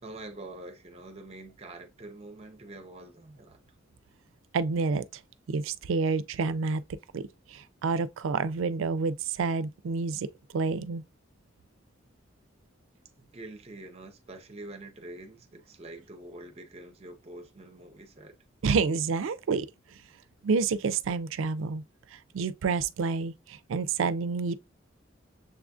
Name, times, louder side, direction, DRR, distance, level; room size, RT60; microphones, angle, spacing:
voice 1, 0.0-3.6 13.2-18.3, right 2 dB, 30° right, 0.6 m, -45 dB
voice 2, 4.5-5.0 5.5-6.8 7.1-7.2 7.5-10.3 10.5-11.0 18.6-19.7 20.4-21.8 22.1-24.5, right 4 dB, 85° right, 0.4 m, -28 dB
6.7 x 2.5 x 2.3 m
head